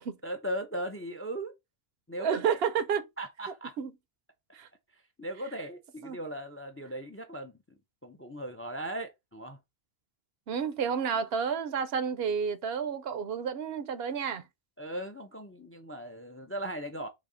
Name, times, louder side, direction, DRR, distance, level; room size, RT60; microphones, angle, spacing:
voice 1, 0.2-1.5 2.1-2.6 3.2-3.8 5.2-7.6 8.0-9.6 14.8-17.1, right 1 dB, 20° left, 0.4 m, -38 dB
voice 2, 2.2-3.1 3.8-3.9 4.5-4.7 6.0-6.2 10.5-14.4, right 7 dB, 70° right, 0.9 m, -30 dB
4.1 x 2.7 x 4.9 m
omnidirectional pair, 1.1 m